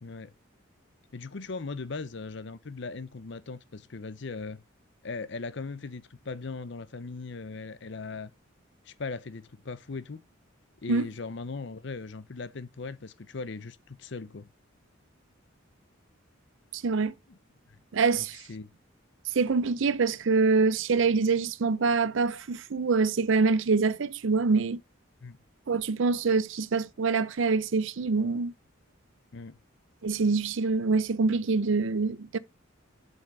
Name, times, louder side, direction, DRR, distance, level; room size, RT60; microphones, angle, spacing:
voice 1, 0.0-0.3 1.1-4.6 5.0-8.3 8.9-10.2 10.8-14.5 17.3-17.4 18.1-18.7 25.2-25.4 29.3-29.6, left 4 dB, 60° left, 0.7 m, -39 dB
voice 2, 16.7-17.1 17.9-18.4 19.3-24.8 25.7-28.5 30.0-32.4, right 4 dB, 65° right, 0.5 m, -25 dB
7.2 x 5.4 x 5.4 m
head